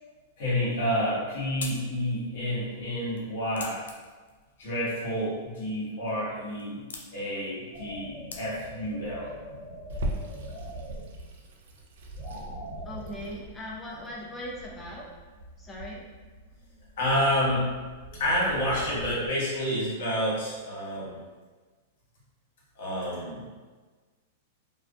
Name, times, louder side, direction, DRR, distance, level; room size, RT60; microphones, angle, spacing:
voice 1, 0.4-3.8 4.6-6.8 7.1-9.3 17.0-17.7 18.2-21.2 22.8-23.4, equal, 65° left, -6 dB, 1.2 m, -29 dB
sound 1, 0.9-8.9, left 3 dB, 85° left, 0.3 m, -47 dB
sound 2, 7.7-19.3, right 1 dB, 45° right, 0.9 m, -43 dB
Water tap faucet / Sink (filling or washing), 9.9-18.9, right 1 dB, 70° right, 0.4 m, -41 dB
voice 2, 12.8-15.1 15.6-16.0, left 1 dB, 15° left, -3 dB, 0.6 m, -39 dB
2.4 x 2.1 x 2.5 m, 1.4 s
hypercardioid pair, 115°, 0 cm